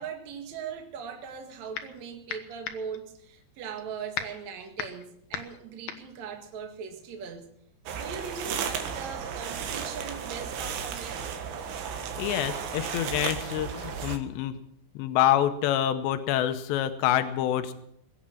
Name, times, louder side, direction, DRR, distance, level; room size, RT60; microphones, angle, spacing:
voice 1, 0.0-7.5 7.9-11.3, right 6 dB, 50° right, 3 dB, 2.7 m, -40 dB
sound 1, 1.2-2.0 2.3-7.3, left 8 dB, 70° left, 1.8 m, -38 dB
sound 2, 7.9-14.2, right 7 dB, 80° right, 3.8 m, -34 dB
voice 2, 12.2-14.5 15.0-17.7, left 11 dB, 90° left, 9 dB, 3.1 m, -26 dB
22.0 x 8.8 x 7.3 m, 0.72 s
omnidirectional pair, 5.0 m